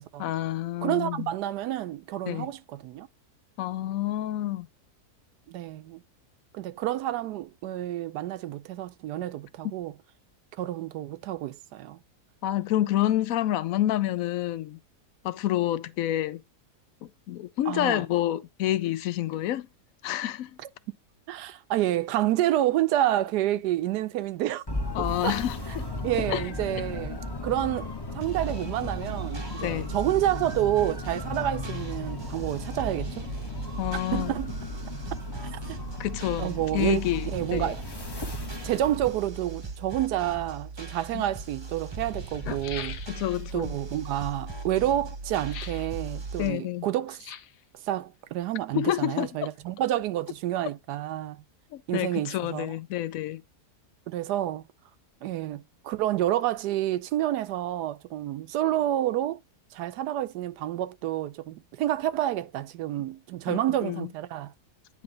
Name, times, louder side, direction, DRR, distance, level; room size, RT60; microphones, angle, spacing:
voice 1, 0.2-1.3 2.3-2.5 3.6-4.7 12.4-14.8 15.2-16.4 17.0-19.7 20.0-20.5 24.9-25.9 26.2-26.4 29.6-30.0 33.8-34.3 36.0-37.7 41.1-41.2 43.1-43.7 46.4-46.9 48.7-49.5 51.7-53.4 63.5-64.1, left 13 dB, 65° left, 0.9 m, -28 dB
voice 2, 0.8-3.1 5.5-6.0 6.5-9.9 10.6-12.0 17.7-18.0 21.3-24.6 25.2-25.4 26.0-27.9 28.1-33.3 34.1-34.5 35.5-35.8 36.4-37.0 37.3-37.8 38.6-43.0 43.5-47.2 47.9-51.4 51.9-52.7 54.1-54.7 55.2-59.4 59.7-64.5, right 13 dB, 85° right, 1.2 m, -29 dB
sound 1, 24.7-39.1, left 2 dB, 20° left, 0.9 m, -36 dB
sound 2, 28.2-46.5, right 4 dB, 25° right, 0.7 m, -38 dB
sound 3, 40.9-41.0 41.9-42.0 42.2-43.5 45.4-45.9 47.1-47.6 48.5-49.3 49.6-49.7, left 8 dB, 85° left, 1.4 m, -41 dB
9.7 x 3.3 x 3.8 m
omnidirectional pair, 1.7 m